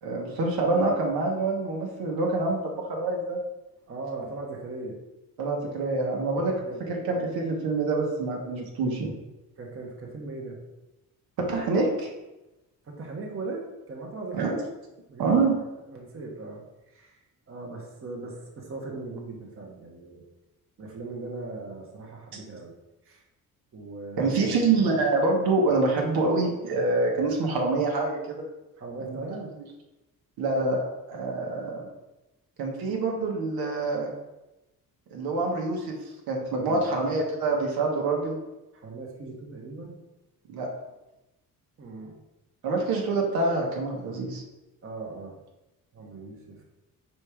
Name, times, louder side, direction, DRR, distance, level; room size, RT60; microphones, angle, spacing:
voice 1, 0.0-3.4 5.4-6.5 6.9-9.1 11.4-12.1 14.3-14.6 15.2-15.5 24.2-28.4 29.0-29.2 30.4-30.8 31.1-31.8 32.6-34.1 35.1-35.9 36.3-38.4 40.5-40.7 42.6-44.4, right 3 dB, 85° right, 0 dB, 1.4 m, -26 dB
voice 2, 3.9-5.0 6.3-6.9 9.6-10.6 12.8-14.6 15.1-15.6 15.9-20.2 20.8-22.7 23.0-23.2 23.7-24.6 28.8-29.5 36.5-37.0 38.7-39.9 41.8-42.1 44.8-45.4 45.9-46.6, right 3 dB, 35° right, 0 dB, 1.2 m, -39 dB
4.9 x 4.3 x 4.9 m, 0.99 s
cardioid pair, 135°, 36 cm